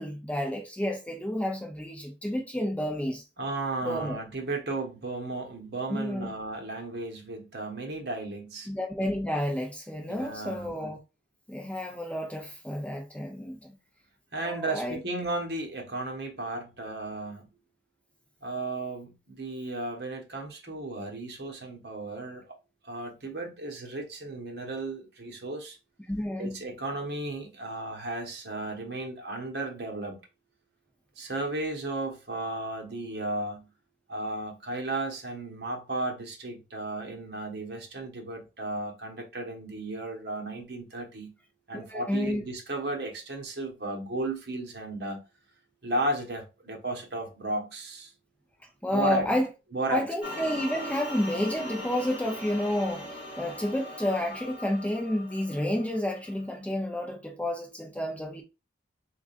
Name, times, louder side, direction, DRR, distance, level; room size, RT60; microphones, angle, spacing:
voice 1, 0.0-3.2 3.8-4.2 5.9-6.3 8.7-11.0 11.5-13.7 14.4-15.0 26.1-26.6 41.7-42.4 48.8-49.5 49.9-58.4, left 1 dB, 5° left, 0.6 m, -30 dB
voice 2, 3.4-8.7 10.1-10.7 14.3-17.5 18.4-22.4 22.8-25.8 26.4-30.2 31.2-33.7 34.1-41.3 41.7-45.2 45.8-48.1 48.9-49.3 49.7-50.1, right 2 dB, 60° right, 1.2 m, -34 dB
sound 1, 50.2-56.5, left 1 dB, 30° left, 1.9 m, -40 dB
3.8 x 3.7 x 2.5 m
head